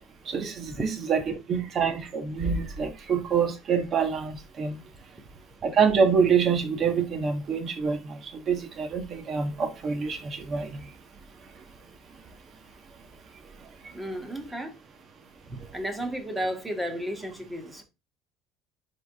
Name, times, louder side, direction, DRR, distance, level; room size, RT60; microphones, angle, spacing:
voice 1, 0.2-4.8 5.6-10.8 13.8-13.9, right 6 dB, 40° right, 1.6 m, -26 dB
voice 2, 13.9-14.7 15.5-17.8, equal, 10° right, 1.8 m, -33 dB
11.0 x 3.8 x 3.7 m
cardioid pair, 115°, 0 cm